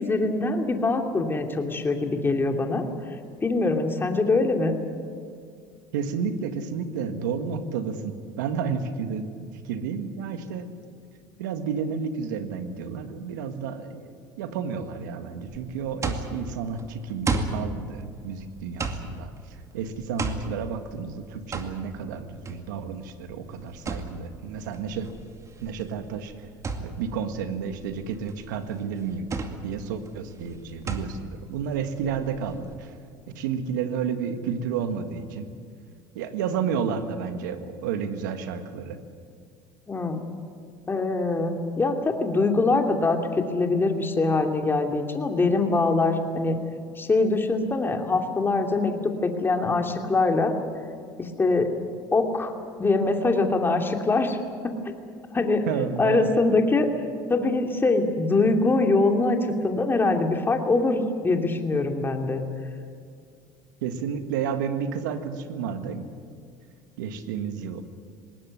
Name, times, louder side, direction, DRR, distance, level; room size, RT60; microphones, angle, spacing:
voice 1, 0.0-2.8 3.4-4.7 39.9-40.2 40.9-46.6 47.0-50.5 51.2-51.7 52.1-52.5 52.8-54.4 54.6-54.7 55.3-55.6 56.0-56.9 57.3-59.4 59.6-62.4, left 3 dB, 20° left, 4 dB, 2.7 m, -23 dB
voice 2, 5.9-9.3 9.5-10.7 11.4-25.1 25.6-26.5 26.8-29.3 29.6-32.9 33.3-35.5 36.1-39.0 55.7-56.3 63.8-66.1 67.0-67.8, right 6 dB, 90° right, 9 dB, 1.7 m, -31 dB
sound 1, 15.5-32.7, right 3 dB, 30° right, 2.3 m, -35 dB
20.0 x 18.0 x 9.8 m, 2.2 s
supercardioid pair, 90°, 10 cm